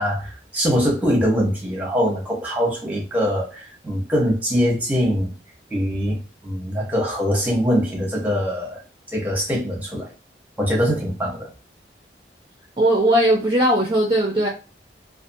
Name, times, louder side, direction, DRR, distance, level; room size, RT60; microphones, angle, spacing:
voice 1, 0.0-5.3 5.7-8.8 9.1-10.1 10.6-11.5, equal, 10° right, 0.8 m, -23 dB
voice 2, 12.8-14.5, right 1 dB, 30° right, 0.4 m, -18 dB
2.5 x 2.4 x 2.6 m
head